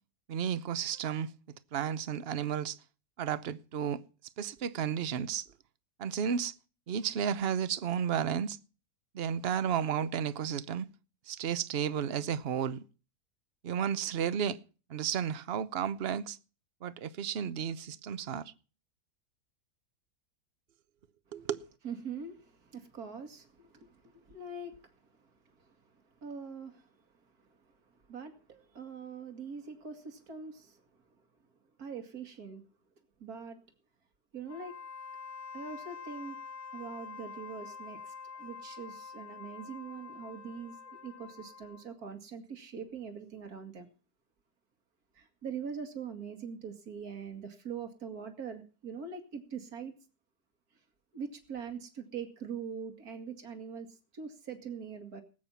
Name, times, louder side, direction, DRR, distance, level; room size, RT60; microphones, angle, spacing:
voice 1, 0.3-1.3 1.7-2.8 3.2-4.0 4.4-5.5 6.0-6.5 6.9-8.6 9.1-10.9 11.3-12.8 13.6-14.6 14.9-16.4 16.8-18.5 21.3-21.7, right 8 dB, 45° right, 1.0 m, -32 dB
voice 2, 21.8-27.0 27.4-27.7 28.1-30.8 31.8-32.6 33.2-33.6 34.3-34.7 35.5-36.4 36.7-43.9 45.1-50.0 51.1-55.2, right 6 dB, 75° right, 2.6 m, -43 dB
Wind instrument woodwind instrument, 34.4-41.9, left 5 dB, 85° left, 1.7 m, -46 dB
19.5 x 8.9 x 5.6 m
omnidirectional pair, 1.6 m